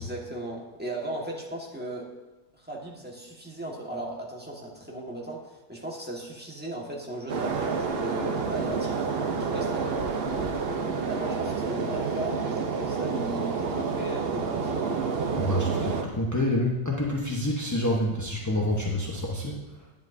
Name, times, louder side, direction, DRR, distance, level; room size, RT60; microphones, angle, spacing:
voice 1, 0.0-2.1 2.5-9.0 9.4-10.6 11.0-14.8, right 1 dB, 5° right, -3 dB, 1.2 m, -37 dB
sound 1, 7.3-16.0, right 5 dB, 60° right, 0.6 m, -29 dB
voice 2, 15.3-19.6, left 1 dB, 25° left, -3 dB, 0.4 m, -27 dB
10.5 x 10.5 x 2.7 m, 1.2 s
omnidirectional pair, 2.0 m